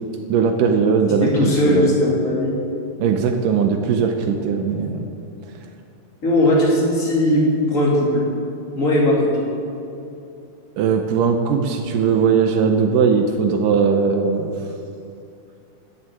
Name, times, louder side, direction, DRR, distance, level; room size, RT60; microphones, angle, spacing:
voice 1, 0.3-2.0 3.0-5.0 10.8-14.5, right 6 dB, 75° right, 5 dB, 2.0 m, -19 dB
voice 2, 1.2-2.5 6.2-7.4 7.7-8.2 8.7-9.5, left 1 dB, 25° left, -4 dB, 2.4 m, -18 dB
12.5 x 7.3 x 8.9 m, 2.7 s
omnidirectional pair, 4.6 m